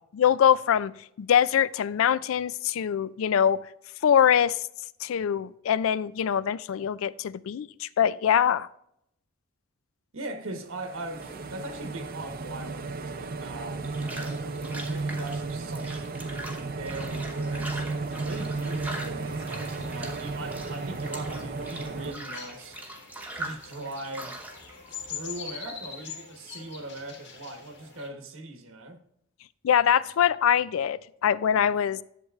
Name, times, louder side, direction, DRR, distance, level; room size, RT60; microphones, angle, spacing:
voice 1, 0.2-0.9 1.2-3.6 4.0-4.6 5.0-8.7 29.6-32.0, left 9 dB, 75° left, 0.3 m, -23 dB
voice 2, 10.1-16.1 16.6-22.8 23.3-24.4 25.1-29.0, right 2 dB, 75° right, 1.2 m, -40 dB
sound 1, 10.7-22.1, right 3 dB, 45° right, 0.5 m, -34 dB
sound 2, 11.2-26.0, right 1 dB, 10° right, 0.9 m, -42 dB
sound 3, 19.3-28.1, left 6 dB, 55° left, 1.7 m, -44 dB
11.0 x 7.8 x 2.4 m
head